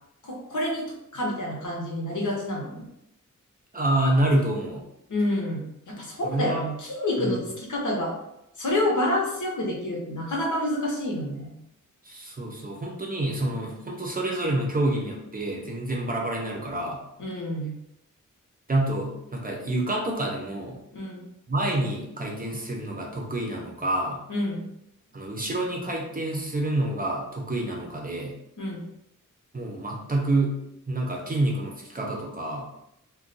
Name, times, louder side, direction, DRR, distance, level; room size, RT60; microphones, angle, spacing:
voice 1, 0.2-0.8 1.1-2.9 5.1-8.1 8.6-11.5 17.2-17.8 20.9-21.2 24.3-24.7 28.6-28.8, left 1 dB, 65° left, -2 dB, 0.9 m, -28 dB
voice 2, 3.7-4.8 6.2-6.7 7.2-7.5 12.0-17.0 18.7-20.8 21.5-24.2 25.1-28.4 29.5-30.6 30.9-32.7, right 1 dB, 25° right, -1 dB, 0.6 m, -27 dB
2.4 x 2.2 x 3.8 m, 0.82 s
wide cardioid pair, 115°, 32 cm